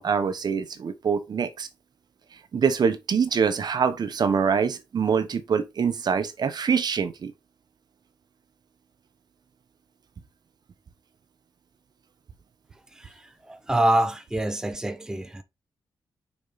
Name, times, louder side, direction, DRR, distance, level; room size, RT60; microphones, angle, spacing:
voice 1, 0.0-1.7 2.5-7.3, right 6 dB, 55° right, 1.0 m, -24 dB
voice 2, 13.7-15.4, right 1 dB, 5° right, 0.8 m, -24 dB
6.5 x 5.2 x 4.2 m
wide cardioid pair, 120°, 8 cm